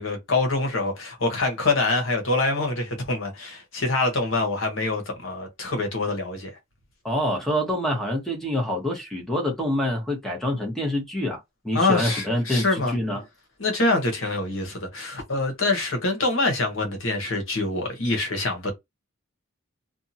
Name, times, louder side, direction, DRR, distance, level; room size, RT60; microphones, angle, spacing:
voice 1, 0.0-6.5 11.7-12.9 13.6-18.7, left 2 dB, 70° left, 1.1 m, -25 dB
voice 2, 7.0-13.2, left 1 dB, ahead, 1.0 m, -26 dB
2.7 x 2.3 x 2.7 m
head